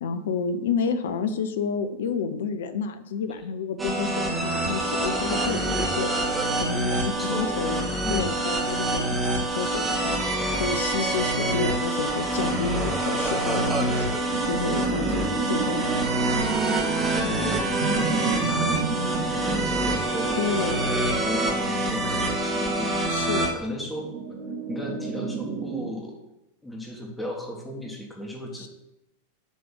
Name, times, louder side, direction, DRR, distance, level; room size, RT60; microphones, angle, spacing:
voice 1, 0.0-15.8 17.2-17.5 20.4-20.9 23.1-23.5 28.6-28.7, left 5 dB, 60° left, 10 dB, 0.5 m, -30 dB
sound 1, 3.8-23.5, right 2 dB, 15° right, 1.2 m, -26 dB
voice 2, 7.2-7.6 8.0-8.4 16.3-18.7 19.4-24.1 24.7-26.2 26.6-28.7, left 1 dB, 5° left, -1 dB, 1.4 m, -35 dB
sound 2, 14.3-25.9, right 4 dB, 50° right, 0.9 m, -33 dB
7.1 x 3.4 x 5.9 m, 0.92 s
figure-of-eight pair, 90°, 0 cm